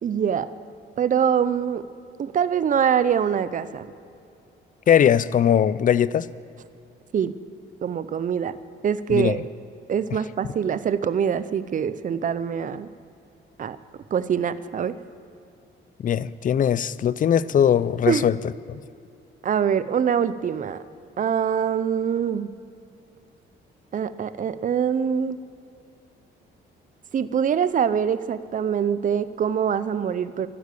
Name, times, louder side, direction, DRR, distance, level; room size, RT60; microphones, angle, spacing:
voice 1, 0.0-0.5 1.0-1.8 2.2-3.9 7.1-7.3 7.8-8.5 8.8-9.4 9.9-12.9 13.6-13.8 14.1-14.9 18.1-18.3 19.4-20.8 21.2-22.5 23.9-25.4 27.1-30.5, right 8 dB, 40° right, 15 dB, 0.6 m, -24 dB
voice 2, 4.9-6.3 9.1-9.4 16.0-18.3 18.7-18.8, left 9 dB, 40° left, 18 dB, 0.4 m, -20 dB
12.0 x 9.8 x 8.2 m, 2.6 s
cardioid pair, 90°, 20 cm